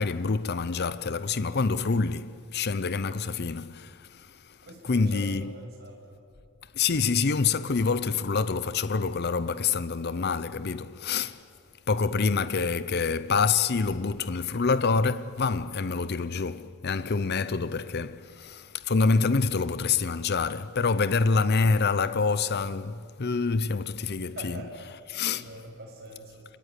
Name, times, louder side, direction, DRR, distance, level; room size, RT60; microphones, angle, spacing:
voice 1, 0.0-5.6 6.7-11.4 11.9-24.6 25.1-25.5, left 4 dB, 50° left, 0.6 m, -26 dB
voice 2, 4.6-6.1 24.1-26.5, right 1 dB, 50° right, 6.8 m, -44 dB
28.0 x 21.5 x 9.9 m
head